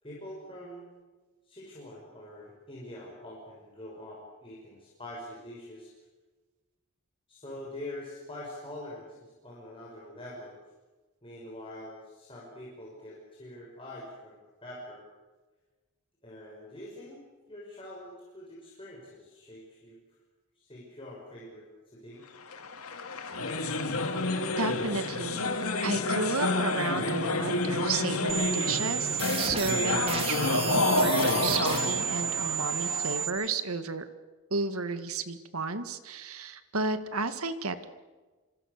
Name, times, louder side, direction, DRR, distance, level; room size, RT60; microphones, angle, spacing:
voice 1, 0.0-0.9 1.4-5.9 7.3-10.6 11.2-15.0 16.2-17.2 17.5-20.0 20.6-22.2, left 1 dB, 25° left, -5 dB, 6.1 m, -45 dB
sound 1, 22.5-33.3, left 2 dB, 90° left, 2.3 m, -29 dB
voice 2, 24.6-25.5 25.8-34.1 34.5-37.9, right 4 dB, 85° right, 10 dB, 2.0 m, -32 dB
sound 2, 28.3-33.3, right 8 dB, 25° right, 3.8 m, -31 dB
27.5 x 26.0 x 6.8 m, 1.3 s
head